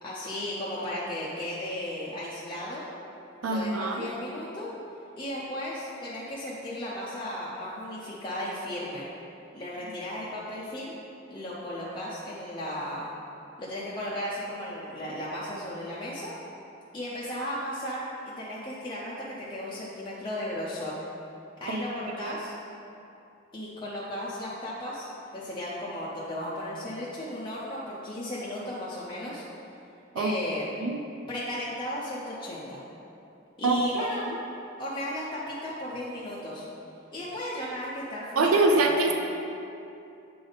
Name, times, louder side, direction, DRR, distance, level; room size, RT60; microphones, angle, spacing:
voice 1, 0.0-2.9 3.4-4.7 5.2-9.0 9.5-11.0 11.3-13.1 13.6-16.3 16.9-21.0 21.6-22.5 23.5-29.4 30.2-30.7 31.3-32.8 33.6-34.3 34.8-36.6 37.1-39.1, left 1 dB, 25° left, -8 dB, 0.7 m, -35 dB
voice 2, 3.4-4.1 21.7-21.8 22.2-22.3 30.2-30.3 30.8-31.0 33.6-33.8 38.4-39.1, right 2 dB, 90° right, 4 dB, 0.5 m, -24 dB
8.4 x 3.5 x 4.0 m, 2.7 s
head